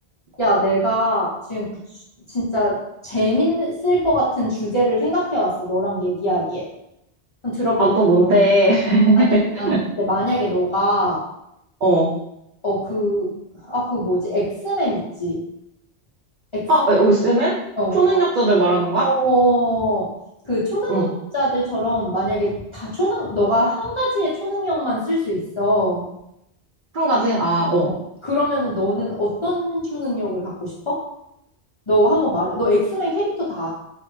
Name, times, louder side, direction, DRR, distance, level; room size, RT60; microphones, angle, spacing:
voice 1, 0.4-1.7 2.3-6.7 7.4-8.0 9.3-11.2 12.6-13.3 13.6-15.4 16.5-16.7 17.8-18.0 19.0-20.1 20.4-21.0 21.3-26.1 27.8-27.9 28.2-31.0 31.9-33.7, equal, 35° left, -8 dB, 0.7 m, -22 dB
voice 2, 7.8-9.8 11.8-12.1 16.7-17.6 17.9-19.1 20.9-21.1 26.9-27.9, right 1 dB, 60° right, -5 dB, 0.6 m, -17 dB
3.2 x 2.0 x 3.0 m, 0.81 s
omnidirectional pair, 1.1 m